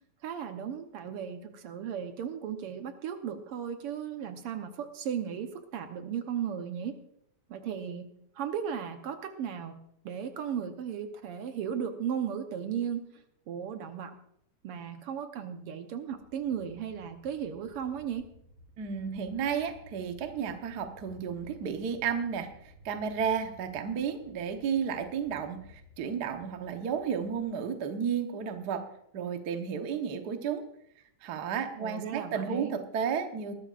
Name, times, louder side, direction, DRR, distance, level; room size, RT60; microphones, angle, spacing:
voice 1, 0.2-6.9 7.5-9.8 10.0-14.1 14.6-18.2 31.7-32.7, right 8 dB, 65° right, 7 dB, 1.5 m, -36 dB
sound 1, 16.1-27.5, equal, 40° right, 5.2 m, -56 dB
voice 2, 18.8-28.8 29.1-30.6 31.2-33.5, right 7 dB, 85° right, 6 dB, 0.8 m, -32 dB
20.5 x 12.5 x 2.5 m, 0.74 s
omnidirectional pair, 3.5 m